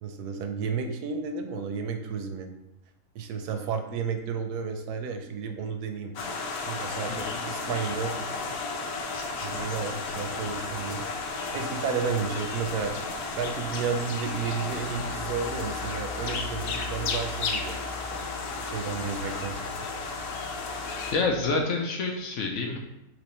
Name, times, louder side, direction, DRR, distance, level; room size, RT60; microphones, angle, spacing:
voice 1, 0.0-2.5 3.1-6.1 6.6-8.5 9.4-11.1 11.5-13.1 13.4-17.8 18.1-18.3 18.6-19.7, right 6 dB, 90° right, 5 dB, 1.1 m, -32 dB
sound 1, 6.2-21.1, left 4 dB, 80° left, 1.1 m, -33 dB
sound 2, 6.7-21.6, left 3 dB, 55° right, 0.7 m, -43 dB
voice 2, 7.1-7.4 21.1-22.8, left 3 dB, 65° left, 2 dB, 0.8 m, -28 dB
3.5 x 3.0 x 4.1 m, 0.87 s
omnidirectional pair, 1.6 m